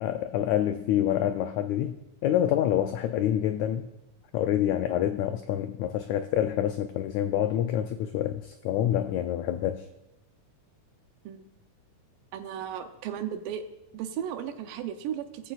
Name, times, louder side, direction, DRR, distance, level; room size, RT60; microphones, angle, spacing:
voice 1, 0.0-3.9 4.3-9.8, left 11 dB, 90° left, 1.6 m, -27 dB
voice 2, 12.3-13.6 13.9-15.5, right 9 dB, 85° right, 2.5 m, -35 dB
17.5 x 14.0 x 2.4 m
omnidirectional pair, 3.8 m